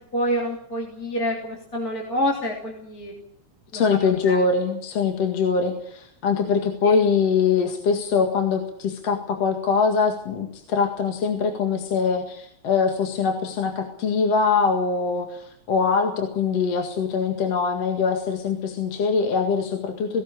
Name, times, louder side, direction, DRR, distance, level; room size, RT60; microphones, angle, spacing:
voice 1, 0.1-3.1 3.7-4.4 6.8-7.0, equal, 30° left, 0 dB, 3.6 m, -27 dB
voice 2, 3.7-20.2, left 5 dB, 60° left, 4 dB, 3.0 m, -23 dB
19.0 x 17.0 x 8.5 m, 0.69 s
omnidirectional pair, 3.3 m